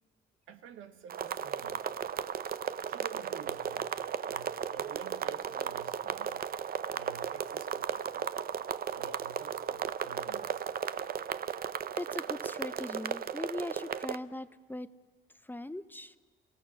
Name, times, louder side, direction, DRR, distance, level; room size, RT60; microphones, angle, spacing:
voice 1, 0.5-1.8 2.8-3.9 4.2-6.5 6.9-8.3 8.9-10.6, right 7 dB, 85° right, 8 dB, 1.4 m, -50 dB
sound 1, 1.1-14.2, right 8 dB, 50° right, 0.7 m, -35 dB
voice 2, 12.0-14.9 15.4-16.2, left 1 dB, 10° left, 12 dB, 0.7 m, -40 dB
28.0 x 16.5 x 6.4 m, 1.4 s
cardioid pair, 90°, 20 cm